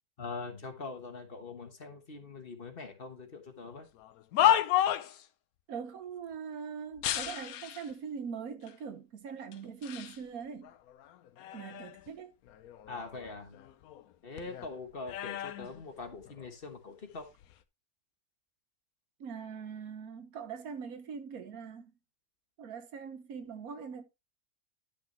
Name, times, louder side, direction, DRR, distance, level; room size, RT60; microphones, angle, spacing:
voice 1, 0.2-3.9 12.9-13.6 14.2-17.3, left 4 dB, 40° left, 1.4 m, -43 dB
sound 1, 4.0-5.3 7.0-7.9 8.7-8.8 9.5-10.2 10.6-12.1 12.5-14.1 14.4-16.5 17.3-17.5, left 11 dB, 90° left, 1.1 m, -32 dB
voice 2, 5.7-10.7 11.5-12.3 19.2-21.9 22.6-24.0, right 6 dB, 85° right, 1.5 m, -42 dB
11.5 x 5.9 x 2.9 m
omnidirectional pair, 1.5 m